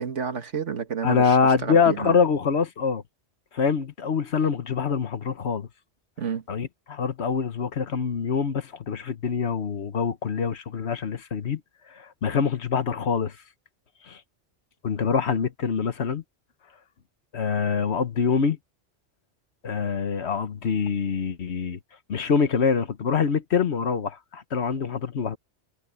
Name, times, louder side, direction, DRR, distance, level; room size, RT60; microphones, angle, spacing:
voice 1, 0.0-2.2 6.2-6.4, right 6 dB, 90° right, 2.0 m, -30 dB
voice 2, 1.0-3.0 3.5-5.7 6.5-11.6 11.9-13.3 14.1-14.2 14.8-16.2 17.3-18.6 19.6-21.8 22.1-25.4, left 6 dB, 65° left, 1.4 m, -25 dB
omnidirectional pair, 1.2 m